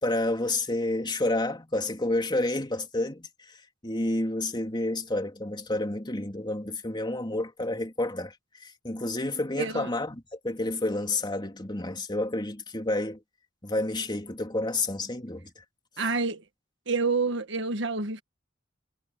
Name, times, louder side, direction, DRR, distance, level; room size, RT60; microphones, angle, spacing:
voice 1, 0.0-3.6 3.8-13.2 13.6-15.6, left 2 dB, 25° left, 3.3 m, -30 dB
voice 2, 9.6-9.9 16.0-16.4 16.9-18.2, right 4 dB, 65° right, 1.6 m, -28 dB
head